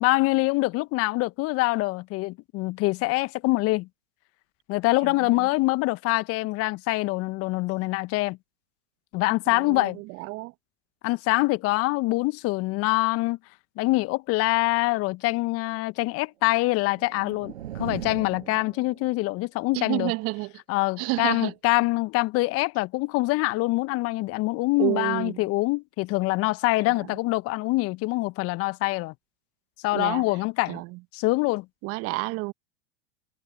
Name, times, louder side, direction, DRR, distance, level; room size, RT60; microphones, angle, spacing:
voice 1, 0.0-3.9 4.7-8.4 9.1-10.0 11.0-13.4 13.8-20.1 20.7-29.1 29.8-30.8 31.1-31.6, left 22 dB, 40° left, 1.3 m, -25 dB
voice 2, 5.0-5.5 9.5-10.5 19.7-20.5 21.0-21.5 24.8-25.4 26.9-27.2 29.9-30.4 30.7-31.0 31.8-32.5, right 23 dB, 40° right, 1.1 m, -30 dB
sound 1, 16.5-19.4, right 12 dB, 70° right, 5.8 m, -39 dB
hypercardioid pair, 90°, 35 cm